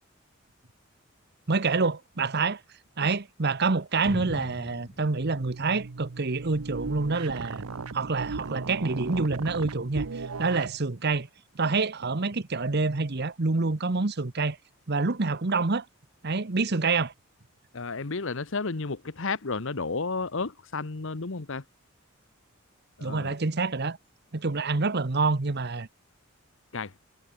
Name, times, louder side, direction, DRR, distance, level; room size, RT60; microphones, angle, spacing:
voice 1, 1.5-2.6 3.0-7.6 7.9-11.3 11.5-14.6 14.9-15.9 16.2-17.1 23.0-24.0 24.3-25.9, right 3 dB, 50° right, 1.0 m, -27 dB
sound 1, 4.0-6.6, equal, 45° left, 4.7 m, -41 dB
sound 2, 5.1-10.8, right 4 dB, 90° right, 0.8 m, -37 dB
voice 2, 17.7-21.6 23.0-23.3 26.7-26.9, left 4 dB, 65° left, 1.1 m, -32 dB
head